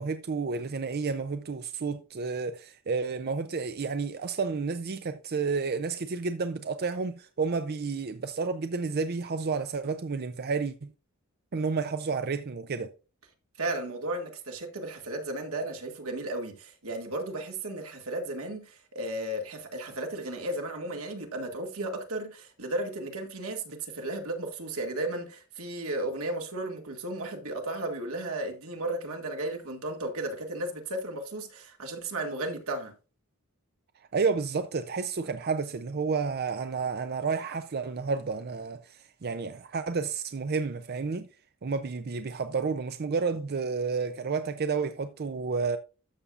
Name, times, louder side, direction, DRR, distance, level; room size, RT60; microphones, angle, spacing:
voice 1, 0.0-10.9 11.5-12.9 34.1-41.3 41.6-45.8, right 4 dB, 50° right, 0.5 m, -31 dB
voice 2, 13.6-32.9, right 1 dB, 85° right, 2.0 m, -34 dB
13.0 x 6.9 x 2.5 m
head